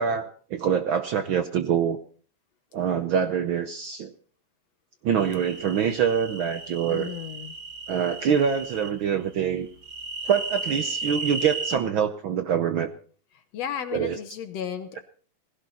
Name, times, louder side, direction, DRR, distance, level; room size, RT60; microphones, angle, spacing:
voice 1, 0.0-2.0 2.7-4.1 5.0-7.1 7.9-9.7 10.2-12.9 13.9-14.2, right 7 dB, 75° right, 9 dB, 1.1 m, -25 dB
sound 1, 5.2-8.9 9.8-11.8, right 3 dB, 40° right, 2.5 m, -35 dB
voice 2, 6.9-7.6 13.3-15.0, left 9 dB, 70° left, 9 dB, 2.0 m, -34 dB
18.0 x 16.5 x 4.2 m, 0.42 s
omnidirectional pair, 3.3 m